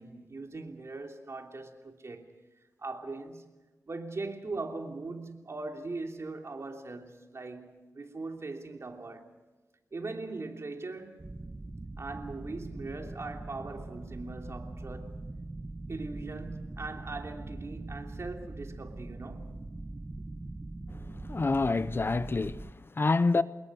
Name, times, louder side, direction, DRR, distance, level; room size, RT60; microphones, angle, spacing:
voice 1, 0.0-2.3 2.8-3.5 3.9-9.3 9.9-11.2 12.0-15.1 15.9-19.6, right 3 dB, 50° right, 3.1 m, -40 dB
sound 1, 11.2-22.7, right 2 dB, 25° right, 1.0 m, -42 dB
voice 2, 20.9-23.4, left 3 dB, 35° left, 0.6 m, -28 dB
25.0 x 21.0 x 6.4 m
wide cardioid pair, 85°, 6 cm